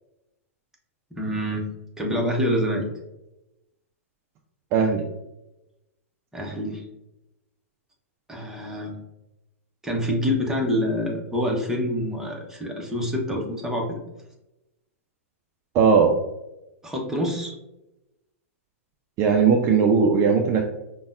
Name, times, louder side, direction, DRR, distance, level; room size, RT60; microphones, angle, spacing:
voice 1, 1.1-1.7 2.0-2.9 6.3-6.8 8.3-9.0 9.8-14.0 16.8-17.5, equal, 5° right, -1 dB, 0.8 m, -26 dB
voice 2, 4.7-5.0 15.7-16.1 19.2-20.6, right 5 dB, 35° right, 2 dB, 0.4 m, -18 dB
5.2 x 2.2 x 2.4 m, 0.93 s
hypercardioid pair, 110°, 8 cm